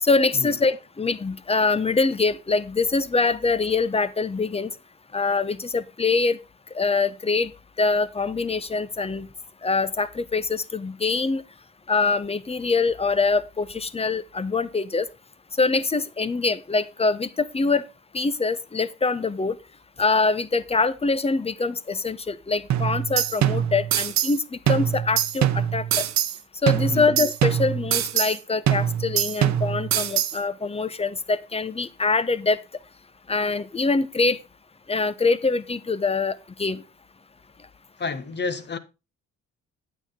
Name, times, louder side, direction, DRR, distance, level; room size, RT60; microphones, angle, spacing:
voice 1, 0.0-4.7 5.1-6.4 6.7-7.5 7.8-9.3 9.6-11.4 11.9-15.1 15.6-17.8 18.1-19.6 20.0-26.0 26.6-32.6 33.3-34.4 34.9-36.8, left 4 dB, 20° left, 0.8 m, -24 dB
sound 1, 22.7-24.4 24.7-26.4 26.7-28.4 28.7-30.4, right 10 dB, 65° right, 0.9 m, -23 dB
voice 2, 38.0-38.8, left 4 dB, 35° left, 1.2 m, -30 dB
9.0 x 8.1 x 3.6 m
cardioid pair, 90°, 30 cm